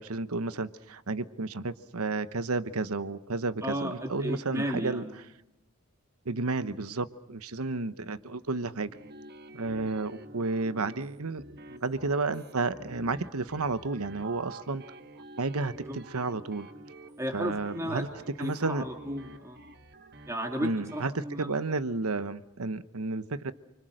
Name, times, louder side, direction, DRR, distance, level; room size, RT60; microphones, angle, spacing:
voice 1, 0.0-5.0 6.2-9.0 9.5-11.4 11.7-14.8 15.4-16.7 17.3-18.1 18.4-18.8 20.6-21.1 21.4-23.5, right 3 dB, 75° right, 13 dB, 1.0 m, -32 dB
voice 2, 3.6-5.2 15.7-16.0 17.2-18.1 18.4-19.6 20.3-21.6, equal, 15° right, 2 dB, 2.4 m, -34 dB
sound 1, 8.9-21.1, right 2 dB, 45° right, 1.3 m, -48 dB
29.0 x 25.5 x 6.5 m, 0.87 s
head